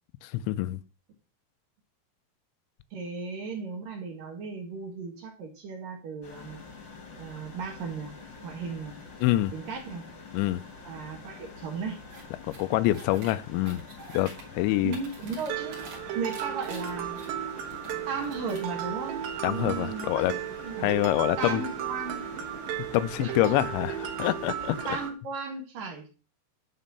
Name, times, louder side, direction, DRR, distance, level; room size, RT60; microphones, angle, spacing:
voice 1, 0.2-0.8 9.2-9.5 10.3-10.6 12.5-13.8 14.1-15.0 19.4-20.3 20.8-21.6 22.9-23.9 24.2-25.0, left 16 dB, 90° left, 3.0 m, -26 dB
voice 2, 2.9-6.6 7.2-8.1 8.4-9.0 9.5-10.0 10.8-12.0 14.8-15.8 16.1-17.2 18.1-20.9 21.4-22.3 23.2-23.5 24.9-26.1, right 4 dB, 60° right, 2.9 m, -35 dB
sound 1, 6.2-25.1, left 4 dB, 40° left, 1.9 m, -46 dB
sound 2, 12.1-12.2 12.5-13.3 13.6-14.4 14.8-16.0 16.3-17.9 18.2-18.7, right 3 dB, 45° right, 3.5 m, -47 dB
Mallet percussion, 15.5-25.1, right 11 dB, 75° right, 3.5 m, -35 dB
11.5 x 4.5 x 6.9 m
omnidirectional pair, 5.1 m